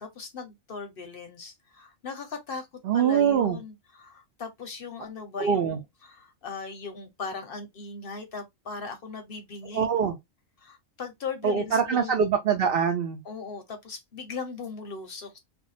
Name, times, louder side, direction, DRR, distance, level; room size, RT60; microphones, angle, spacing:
voice 1, 0.0-2.7 2.9-9.9 10.6-12.2 13.2-15.4, left 5 dB, 55° left, 0.7 m, -38 dB
voice 2, 2.8-3.6 5.4-5.8 9.7-10.1 11.4-13.2, right 7 dB, 60° right, 0.7 m, -23 dB
2.6 x 2.0 x 3.9 m
omnidirectional pair, 1.3 m